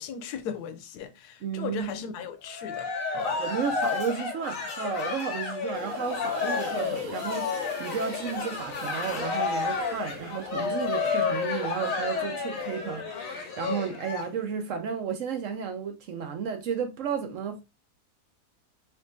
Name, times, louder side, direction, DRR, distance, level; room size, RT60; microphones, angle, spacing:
voice 1, 0.0-3.4, left 8 dB, 85° left, 1.1 m, -38 dB
voice 2, 1.4-2.3 3.4-17.6, right 7 dB, 65° right, 0.9 m, -33 dB
Cheering, 2.5-14.2, left 5 dB, 65° left, 1.3 m, -31 dB
sound 1, 3.8-9.4, left 3 dB, 45° left, 0.7 m, -48 dB
sound 2, 5.7-12.9, right 2 dB, 80° right, 0.5 m, -45 dB
4.4 x 2.8 x 2.6 m
omnidirectional pair, 1.7 m